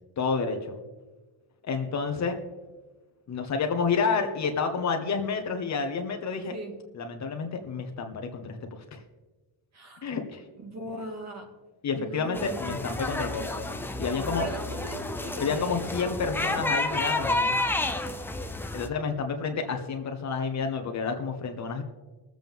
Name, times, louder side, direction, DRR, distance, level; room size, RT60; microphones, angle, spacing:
voice 1, 0.2-0.8 1.6-2.4 3.3-6.5 6.9-8.6 8.9-9.0 10.0-10.4 11.8-13.7 14.0-14.5 15.4-17.6 18.7-21.8, left 5 dB, 35° left, 5 dB, 1.2 m, -29 dB
voice 2, 6.5-6.8 9.7-10.1 10.6-11.5 12.0-12.8 14.4-15.8, right 1 dB, 35° right, 3 dB, 2.0 m, -39 dB
sound 1, 12.3-18.9, left 2 dB, 5° left, 0.4 m, -30 dB
21.5 x 7.7 x 3.6 m, 1.2 s
cardioid pair, 165°, 46 cm